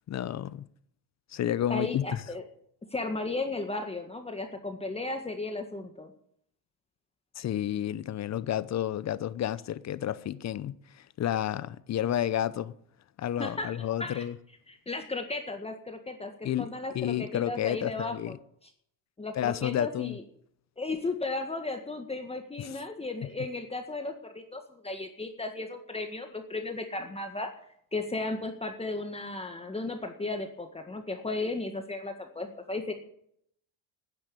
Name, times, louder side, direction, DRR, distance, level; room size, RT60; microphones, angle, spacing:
voice 1, 0.1-0.6 1.3-2.1 7.4-12.7 13.2-14.4 16.4-18.4 19.3-20.2 22.6-22.8, left 11 dB, 35° left, 0.8 m, -31 dB
voice 2, 1.7-2.4 2.9-6.1 13.4-14.2 14.7-18.4 19.2-20.2 20.8-27.5 27.9-32.9, left 2 dB, 15° left, 1.7 m, -35 dB
11.5 x 10.0 x 8.5 m
supercardioid pair, 110°, 44 cm